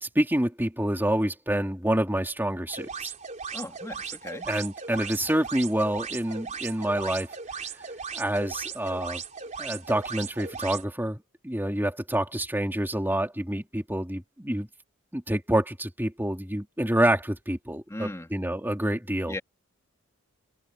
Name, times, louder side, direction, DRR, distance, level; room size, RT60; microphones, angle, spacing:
voice 1, 0.0-3.1 4.4-7.3 8.1-9.2 9.6-14.7 15.1-19.4, right 1 dB, 10° right, 3.1 m, -27 dB
sound 1, 2.7-10.8, right 6 dB, 35° right, 3.9 m, -38 dB
voice 2, 3.5-4.5 17.9-18.3 19.3-19.4, left 1 dB, 15° left, 2.4 m, -37 dB
head